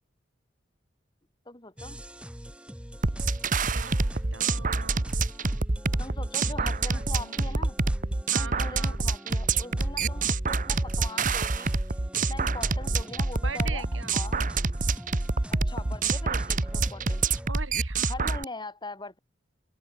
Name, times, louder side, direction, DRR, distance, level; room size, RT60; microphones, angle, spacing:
voice 1, 1.5-2.0 6.0-7.8 8.3-11.7 12.2-13.8 14.1-14.4 15.5-17.2 18.1-19.2, left 2 dB, 25° left, 5.5 m, -41 dB
sound 1, 1.8-17.5, equal, 5° right, 4.5 m, -44 dB
sound 2, 3.0-18.4, right 3 dB, 45° right, 1.3 m, -27 dB
voice 2, 3.7-5.1 6.8-7.6 8.3-9.0 13.4-14.2 17.5-18.3, right 4 dB, 85° right, 6.3 m, -41 dB
head